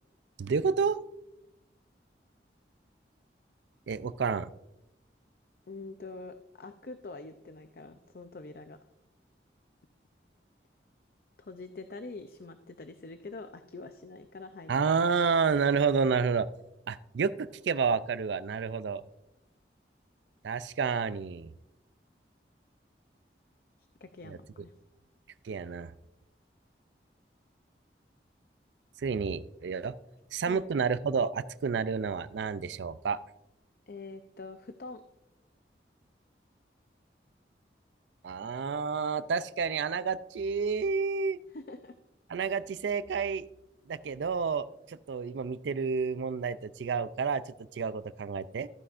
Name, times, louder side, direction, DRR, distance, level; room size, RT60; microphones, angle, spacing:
voice 1, 0.4-1.0 3.9-4.5 14.7-16.5 16.9-19.0 20.4-21.5 24.3-24.4 25.4-25.9 29.0-30.0 30.3-33.2 38.2-41.4 42.3-43.4 43.9-47.4 47.7-48.7, right 5 dB, 90° right, 15 dB, 0.4 m, -30 dB
voice 2, 5.7-8.8 11.4-14.9 24.0-24.7 30.5-30.6 33.9-35.0 41.5-41.9, left 3 dB, 55° left, 9 dB, 0.5 m, -45 dB
14.0 x 9.7 x 2.5 m, 0.89 s
head